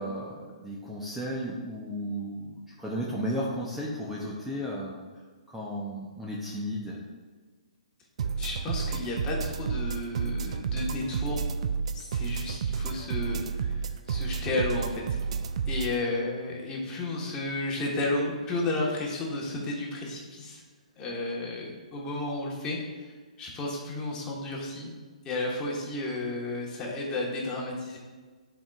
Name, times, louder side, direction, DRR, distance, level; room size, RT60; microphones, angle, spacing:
voice 1, 0.0-5.1 5.5-7.0, equal, 5° right, -5 dB, 0.7 m, -34 dB
sound 1, 8.2-15.9, right 6 dB, 55° right, 0.4 m, -31 dB
voice 2, 8.4-11.5 11.9-15.2 15.7-20.6 21.0-23.0 23.4-24.9 25.2-28.0, left 2 dB, 20° left, -2 dB, 1.4 m, -32 dB
9.8 x 4.5 x 2.5 m, 1.4 s
figure-of-eight pair, 130°, 4 cm